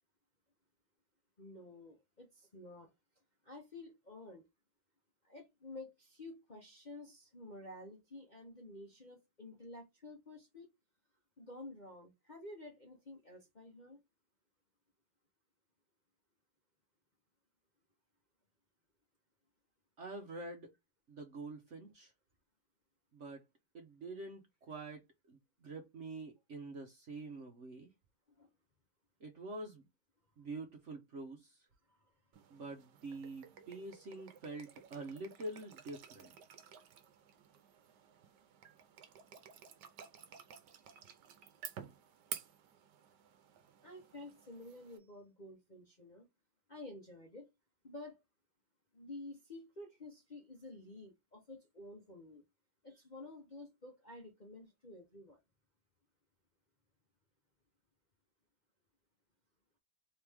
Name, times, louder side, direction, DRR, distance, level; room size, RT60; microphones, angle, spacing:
voice 1, 1.4-2.9 3.4-4.4 5.2-10.7 11.4-14.0 28.3-28.5 31.9-32.0 43.8-46.3 46.7-47.5 47.8-48.2 48.9-52.4 52.8-55.4, left 2 dB, 35° left, 0.8 m, -51 dB
voice 2, 20.0-20.7 21.1-22.1 23.1-23.4 23.7-27.9 29.2-29.9 30.4-31.7 32.5-36.4, right 2 dB, 50° right, 1.0 m, -46 dB
sound 1, 32.3-45.0, right 9 dB, 70° right, 1.3 m, -53 dB
3.9 x 3.1 x 3.5 m
omnidirectional pair, 2.0 m